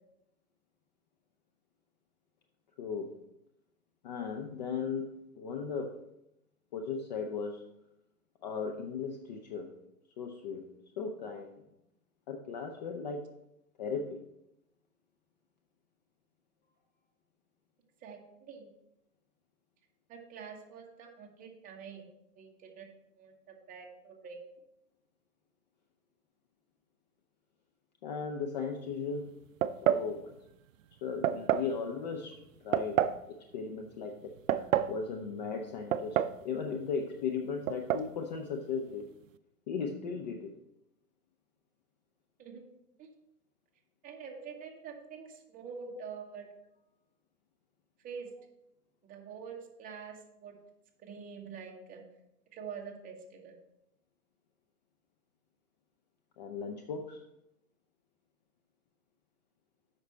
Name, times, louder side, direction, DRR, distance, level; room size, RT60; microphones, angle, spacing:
voice 1, 2.8-3.1 4.0-6.0 6.7-7.6 8.4-9.7 10.2-10.6 11.0-11.6 12.3-13.3 13.8-14.2 28.0-29.3 29.8-30.3 31.0-34.3 34.9-39.1 39.7-40.5 45.9-46.0 56.4-57.2, left 5 dB, 30° left, 3 dB, 0.5 m, -37 dB
voice 2, 18.0-18.7 20.1-22.0 22.4-22.9 23.1-24.4 42.4-42.6 43.0-43.1 44.0-46.5 48.0-48.3 49.0-50.5 51.0-52.0 52.5-53.5, right 6 dB, 15° right, 1 dB, 1.1 m, -46 dB
sound 1, 29.6-30.1 31.2-31.7 32.7-33.2 34.2-35.0 35.9-36.4 36.7-36.8 37.7-38.1, right 10 dB, 55° right, 0.5 m, -28 dB
7.9 x 5.9 x 4.2 m, 0.84 s
hypercardioid pair, 130°, 47 cm